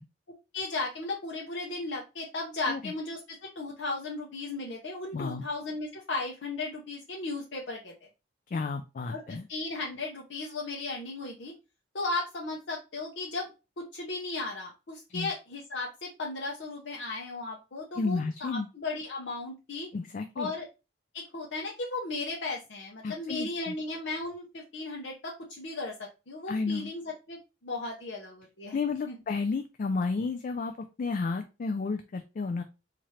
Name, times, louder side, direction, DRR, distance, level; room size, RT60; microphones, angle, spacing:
voice 1, 0.5-8.1 9.1-11.5 11.9-13.5 13.8-19.9 20.4-20.7 21.1-28.8 29.1-29.2, left 3 dB, 65° left, -2 dB, 0.7 m, -36 dB
voice 2, 5.1-5.4 8.5-9.5 15.1-15.3 18.0-18.7 19.9-20.5 23.0-23.7 26.5-26.9 28.7-32.6, left 4 dB, 45° left, 7 dB, 0.3 m, -32 dB
4.2 x 2.5 x 3.1 m, 0.29 s
head